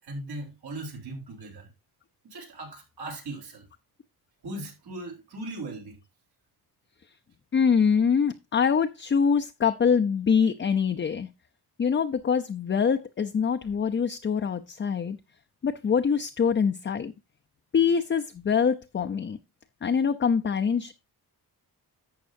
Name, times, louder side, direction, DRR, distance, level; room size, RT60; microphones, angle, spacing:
voice 1, 0.0-1.7 2.2-3.6 4.4-6.0, right 2 dB, 75° right, 3.8 m, -38 dB
voice 2, 7.5-11.3 11.8-15.2 15.6-17.1 17.7-19.4 19.8-20.9, left 6 dB, 30° left, 0.6 m, -24 dB
11.5 x 8.0 x 2.6 m
cardioid pair, 120°, 39 cm